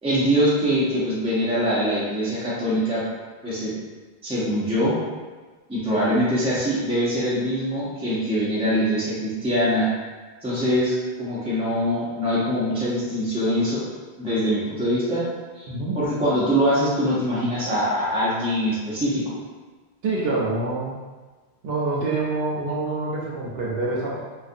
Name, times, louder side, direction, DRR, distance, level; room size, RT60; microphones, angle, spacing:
voice 1, 0.0-3.0 3.4-3.7 4.2-4.9 5.7-9.9 10.4-13.8 14.2-15.2 15.6-15.7 16.0-19.4, equal, 5° right, -9 dB, 0.6 m, -23 dB
voice 2, 15.7-16.0 20.0-20.9 21.6-24.2, right 3 dB, 70° right, -4 dB, 0.8 m, -26 dB
2.4 x 2.3 x 2.6 m, 1.3 s
omnidirectional pair, 1.1 m